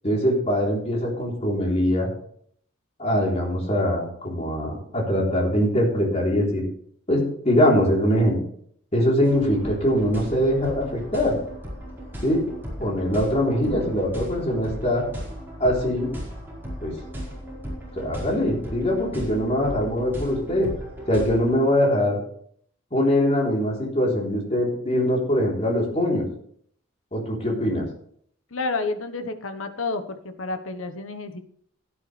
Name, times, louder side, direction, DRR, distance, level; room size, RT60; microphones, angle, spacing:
voice 1, 0.0-2.1 3.0-6.6 7.1-8.4 8.9-11.4 12.2-12.4 12.8-15.0 15.6-16.1 16.8-16.9 17.9-20.7 21.1-22.2 22.9-26.2 27.1-27.9, equal, 30° left, -2 dB, 3.6 m, -22 dB
sound 1, 9.2-21.5, equal, 10° right, 4.6 m, -36 dB
voice 2, 28.5-31.4, left 3 dB, 85° left, 8 dB, 1.1 m, -30 dB
16.0 x 9.9 x 3.3 m, 0.64 s
head